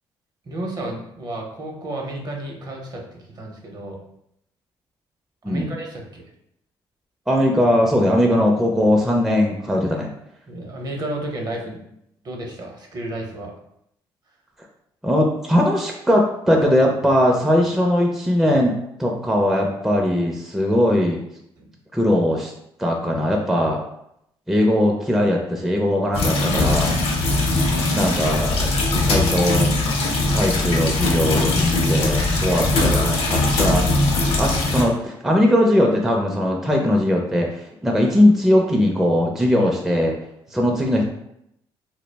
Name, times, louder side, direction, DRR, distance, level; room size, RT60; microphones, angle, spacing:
voice 1, 0.4-4.0 5.5-6.2 10.5-11.8 12.2-13.5 21.6-21.7, right 1 dB, 40° right, 1 dB, 0.7 m, -32 dB
voice 2, 7.3-10.1 15.0-18.7 19.0-21.2 21.9-22.5 22.8-23.8 24.5-27.0 27.9-29.7 30.3-33.9 34.4-40.2 40.5-41.0, left 1 dB, 5° right, -1 dB, 0.4 m, -20 dB
sound 1, 26.1-34.8, left 2 dB, 70° left, 0.6 m, -20 dB
2.2 x 2.0 x 3.2 m, 0.78 s
supercardioid pair, 75°, 10 cm